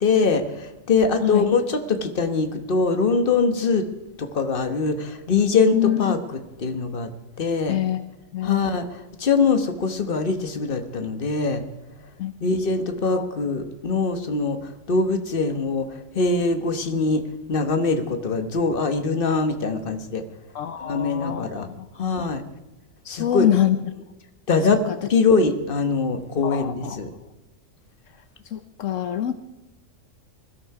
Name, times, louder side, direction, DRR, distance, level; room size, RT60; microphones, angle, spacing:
voice 1, 0.0-3.9 4.2-7.1 7.4-7.8 8.4-11.6 12.4-17.2 17.5-20.2 20.8-21.7 22.0-22.4 23.1-23.5 24.5-24.8 25.1-27.1, left 4 dB, 45° left, 8 dB, 1.4 m, -23 dB
voice 2, 7.7-8.0 8.3-8.8 12.2-12.3 13.1-13.3 20.5-21.7 23.0-23.8 24.9-25.0 26.4-27.0 28.5-29.3, left 11 dB, 75° left, 11 dB, 1.1 m, -24 dB
20.0 x 13.0 x 4.8 m, 1.1 s
omnidirectional pair, 1.3 m